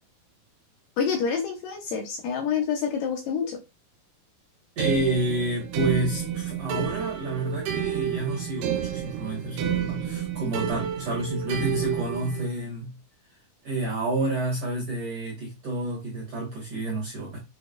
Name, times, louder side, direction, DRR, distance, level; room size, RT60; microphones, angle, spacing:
voice 1, 1.0-3.6, left 6 dB, 75° left, 2.1 m, -27 dB
voice 2, 4.8-12.9 13.6-17.4, right 2 dB, 60° right, 1.6 m, -29 dB
sound 1, 4.8-12.5, right 9 dB, 80° right, 2.7 m, -30 dB
7.1 x 3.1 x 2.4 m
omnidirectional pair, 4.5 m